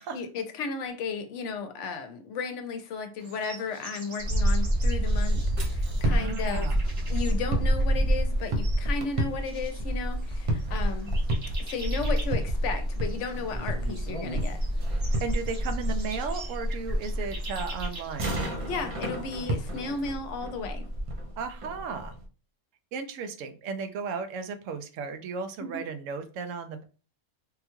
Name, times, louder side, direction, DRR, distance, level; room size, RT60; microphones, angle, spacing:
voice 1, 0.0-6.7 7.1-11.1 11.6-14.6 18.7-20.9 25.6-25.9, left 4 dB, 70° left, 0.9 m, -34 dB
sound 1, 3.2-20.1, right 2 dB, 45° right, 1.0 m, -46 dB
sound 2, 4.2-22.2, right 1 dB, 60° right, 0.3 m, -28 dB
voice 2, 6.0-6.8 15.2-18.3 21.4-22.1 22.9-26.8, right 5 dB, 75° right, 0.9 m, -35 dB
3.6 x 2.2 x 2.9 m
omnidirectional pair, 1.3 m